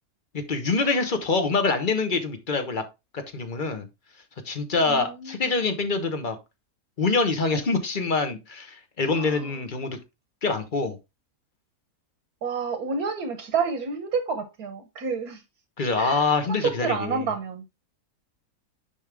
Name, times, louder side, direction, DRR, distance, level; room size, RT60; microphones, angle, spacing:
voice 1, 0.3-2.8 3.1-3.9 4.4-6.4 7.0-10.0 10.4-11.0 15.8-17.2, left 4 dB, 35° left, 1.1 m, -25 dB
voice 2, 4.9-5.4 9.1-9.6 12.4-15.4 16.0-17.6, right 5 dB, 80° right, 1.6 m, -29 dB
9.9 x 3.6 x 3.5 m
omnidirectional pair, 1.6 m